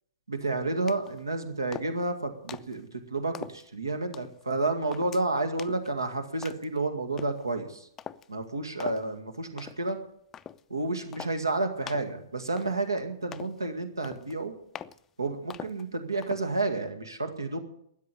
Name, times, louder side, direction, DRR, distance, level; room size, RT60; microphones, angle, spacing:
voice 1, 0.3-7.9 8.3-10.0 10.7-14.5 15.2-17.6, right 2 dB, 75° right, 7 dB, 2.0 m, -30 dB
sound 1, 0.9-1.2 1.7-2.1 2.5-2.8 3.3-3.7 4.1-4.4 4.9-5.2 5.6-5.9 6.4-6.8 7.2-7.4 8.0-8.3 8.8-9.1 9.6-9.9 10.3-10.6 11.1-11.4 11.9-12.1 12.6-13.0 13.3-13.6 14.0-14.4 14.8-15.0 15.5-15.8 16.2-16.5, left 8 dB, 15° left, 0.5 m, -42 dB
13.0 x 9.7 x 9.9 m, 0.72 s
figure-of-eight pair, 115°, 2 cm